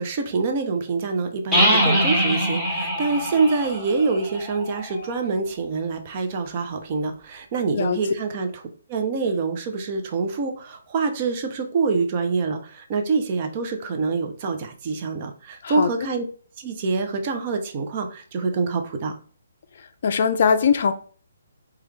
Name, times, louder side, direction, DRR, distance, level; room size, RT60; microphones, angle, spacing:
voice 1, 0.0-8.6 8.9-16.2 16.6-19.1, right 4 dB, 35° right, 0.5 m, -25 dB
sound 1, 1.5-5.2, equal, 5° right, 1.6 m, -23 dB
voice 2, 20.0-20.9, left 6 dB, 50° left, 0.3 m, -20 dB
3.0 x 2.3 x 3.2 m
figure-of-eight pair, 140°, 0 cm